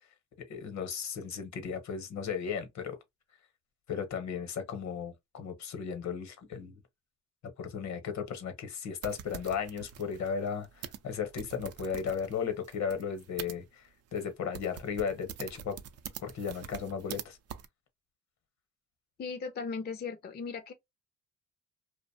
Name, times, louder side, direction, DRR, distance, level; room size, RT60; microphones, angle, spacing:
voice 1, 0.5-3.0 3.9-6.8 7.6-15.8 16.2-17.4, left 6 dB, 65° left, 0.9 m, -35 dB
sound 1, 9.0-13.6 14.2-14.3 14.5-17.2 17.5-17.7, right 9 dB, 55° right, 0.5 m, -45 dB
voice 2, 19.2-20.7, left 5 dB, 35° left, 0.5 m, -37 dB
2.5 x 2.0 x 2.7 m
cardioid pair, 90°, 30 cm